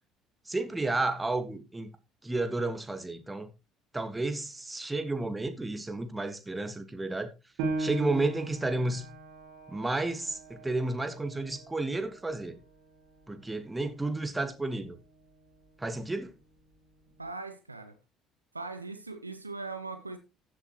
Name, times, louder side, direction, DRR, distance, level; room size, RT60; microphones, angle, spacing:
voice 1, 0.4-1.9 2.2-3.5 3.9-7.3 7.8-9.1 9.7-12.6 13.3-15.0 15.8-16.3, right 2 dB, 15° right, 1.6 m, -32 dB
Piano, 7.6-12.8 13.2-13.3 13.9-14.4, right 2 dB, 60° right, 2.4 m, -38 dB
voice 2, 17.2-18.0 18.5-20.2, right 3 dB, 85° right, 0.6 m, -40 dB
14.5 x 7.8 x 3.0 m
figure-of-eight pair, 55°, 0 cm